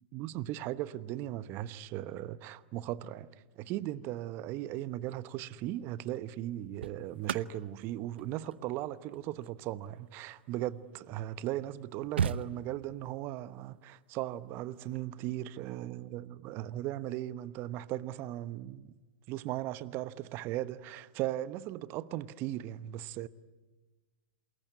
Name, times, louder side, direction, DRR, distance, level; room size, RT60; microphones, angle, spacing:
voice 1, 0.0-3.3 3.6-18.9 19.3-23.3, right 14 dB, 40° right, 1.0 m, -37 dB
sound 1, 5.2-5.5 6.4-11.0 11.5-11.6 11.8-13.1 14.7-15.0, right 7 dB, 75° right, 0.8 m, -38 dB
28.0 x 21.5 x 9.6 m
hypercardioid pair, 105°, 6 cm